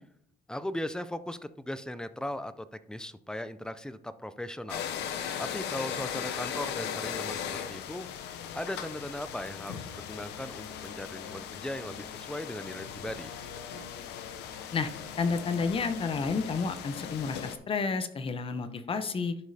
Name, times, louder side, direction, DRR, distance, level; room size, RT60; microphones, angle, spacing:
voice 1, 0.5-4.8 5.4-8.1 8.6-13.4, left 1 dB, 5° left, 13 dB, 0.4 m, -38 dB
sound 1, 4.7-17.6, left 8 dB, 85° left, 0.7 m, -38 dB
voice 2, 15.2-19.4, left 4 dB, 35° left, 10 dB, 0.7 m, -30 dB
11.5 x 5.1 x 2.8 m, 0.68 s
cardioid pair, 110°, 17 cm